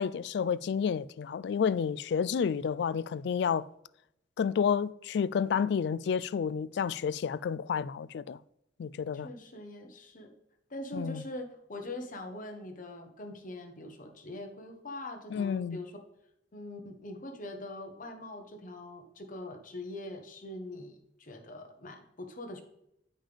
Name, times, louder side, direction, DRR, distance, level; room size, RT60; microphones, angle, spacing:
voice 1, 0.0-3.7 4.4-8.4 8.8-9.3 10.9-11.2 15.3-15.8, left 7 dB, 65° left, 0.3 m, -30 dB
voice 2, 9.1-10.3 10.7-15.9 16.5-22.6, left 1 dB, 50° left, 1.2 m, -43 dB
8.8 x 5.5 x 3.4 m
head